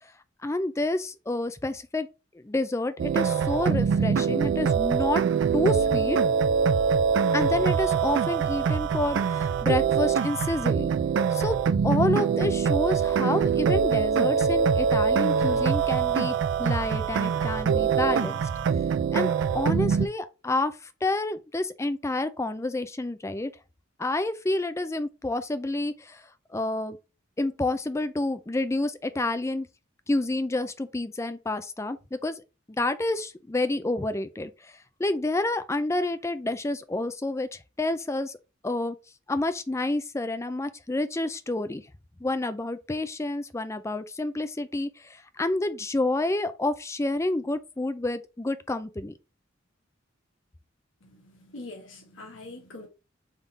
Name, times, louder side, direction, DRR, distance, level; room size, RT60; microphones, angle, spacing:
voice 1, 0.4-2.1 2.3-5.2 5.5-6.2 7.3-10.9 11.3-11.6 11.8-18.4 19.1-20.8 21.0-23.5 24.0-26.2 26.5-27.0 27.4-29.7 30.1-32.4 32.7-34.5 35.0-38.3 38.6-39.0 39.3-41.8 42.2-49.1, left 2 dB, 15° left, 0.4 m, -29 dB
sound 1, 3.0-20.1, right 6 dB, 65° right, 0.3 m, -24 dB
voice 2, 51.0-52.9, left 2 dB, 75° left, 1.2 m, -44 dB
3.7 x 3.6 x 4.0 m
head